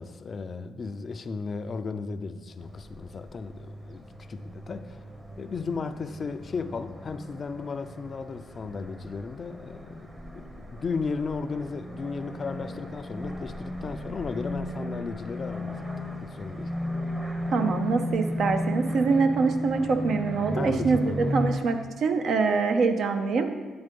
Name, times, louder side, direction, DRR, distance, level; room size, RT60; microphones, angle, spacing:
voice 1, 0.0-5.0 5.4-16.7 20.5-21.5, left 4 dB, 40° left, 10 dB, 0.4 m, -35 dB
sound 1, 2.6-21.6, left 1 dB, 20° right, 0.8 m, -35 dB
voice 2, 17.5-23.5, right 4 dB, 65° right, 7 dB, 0.6 m, -24 dB
8.8 x 3.6 x 5.2 m, 1.4 s
cardioid pair, 90°, 0 cm